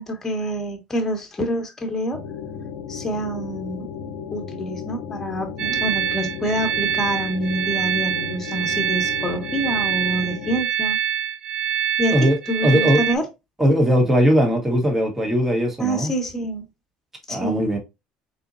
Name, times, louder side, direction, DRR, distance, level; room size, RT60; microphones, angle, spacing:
voice 1, 0.0-2.2 2.9-3.9 4.3-11.0 12.0-13.2 15.8-16.6 17.3-17.8, right 1 dB, 10° left, 1.4 m, -27 dB
sound 1, 2.1-10.6, left 7 dB, 90° left, 0.7 m, -34 dB
sound 2, 5.6-13.2, right 8 dB, 40° right, 0.3 m, -25 dB
voice 2, 12.6-13.0 13.6-16.1 17.3-17.8, equal, 10° right, 1.3 m, -19 dB
4.2 x 4.1 x 2.6 m
cardioid pair, 155°, 3 cm